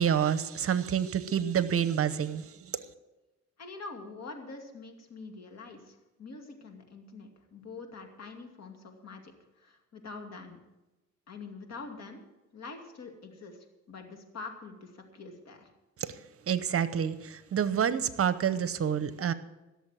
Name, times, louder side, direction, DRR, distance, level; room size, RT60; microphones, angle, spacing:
voice 1, 0.0-2.8 16.0-16.2 16.5-19.3, right 8 dB, 50° right, 0.8 m, -28 dB
voice 2, 3.6-10.6 11.3-12.2 12.5-13.6 13.9-15.7, left 3 dB, 60° left, 2.5 m, -45 dB
16.5 x 7.0 x 7.6 m
cardioid pair, 90°, 30 cm